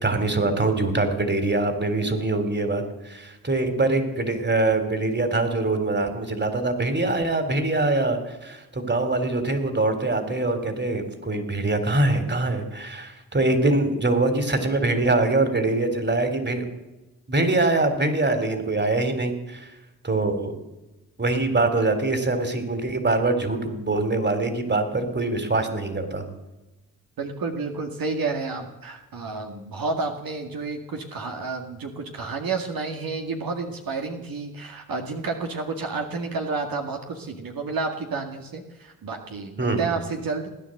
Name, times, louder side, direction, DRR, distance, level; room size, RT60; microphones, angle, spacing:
voice 1, 0.0-16.7 17.3-19.7 20.0-20.6 21.2-26.3 39.6-39.8, right 2 dB, 30° right, 8 dB, 3.6 m, -23 dB
voice 2, 27.2-40.5, right 4 dB, 70° right, 3 dB, 2.0 m, -30 dB
18.5 x 9.9 x 7.9 m, 1.0 s
supercardioid pair, 50°, 37 cm